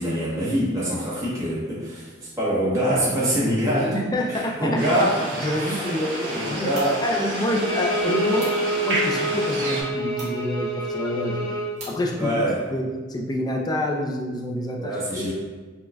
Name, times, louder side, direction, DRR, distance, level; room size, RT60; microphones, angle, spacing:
voice 1, 0.0-4.0 4.3-5.1 5.6-5.8 6.2-7.0 12.2-12.6 14.7-15.3, equal, 15° right, -8 dB, 0.9 m, -24 dB
voice 2, 3.9-5.0 5.4-6.7 7.0-8.5 8.8-11.6 11.9-12.4 12.7-15.3, left 1 dB, 20° left, 1 dB, 0.3 m, -27 dB
sound 1, 4.8-9.8, right 1 dB, 65° right, 0.9 m, -30 dB
sound 2, 6.3-12.7, right 2 dB, 40° right, 1.0 m, -46 dB
Bowed string instrument, 7.5-11.7, right 1 dB, 75° left, 1.1 m, -27 dB
4.4 x 2.3 x 2.2 m, 1.3 s
head